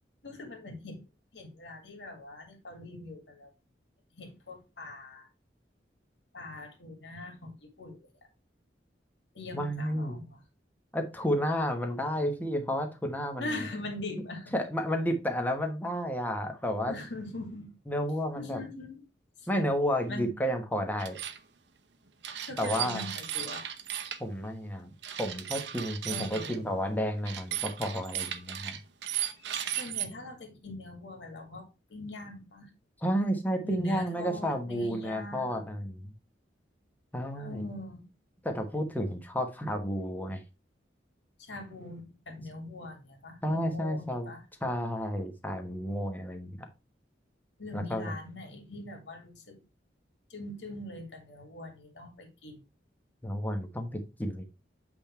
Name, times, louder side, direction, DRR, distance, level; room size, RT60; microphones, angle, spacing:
voice 1, 0.2-1.0 1.3-3.5 4.1-5.3 6.3-8.1 9.3-10.4 13.4-14.6 16.8-17.8 18.4-19.0 19.4-19.5 20.1-20.3 22.4-23.7 26.1-26.7 29.4-29.5 29.7-32.7 33.6-35.6 37.4-38.1 41.4-44.4 47.6-49.6 50.3-52.6, left 2 dB, 70° left, 2.2 m, -42 dB
voice 2, 9.5-10.2 10.9-13.5 14.5-17.0 17.9-18.6 19.5-21.2 22.6-23.1 24.2-24.9 25.2-28.8 33.0-36.1 37.1-37.7 38.4-40.4 43.4-44.3 44.6-46.7 47.7-48.1 53.2-54.4, equal, 10° left, 1.2 m, -31 dB
sound 1, 21.0-21.4 22.2-24.2 25.0-26.6 27.3-30.1, right 10 dB, 70° right, 0.8 m, -36 dB
8.0 x 3.6 x 4.4 m
head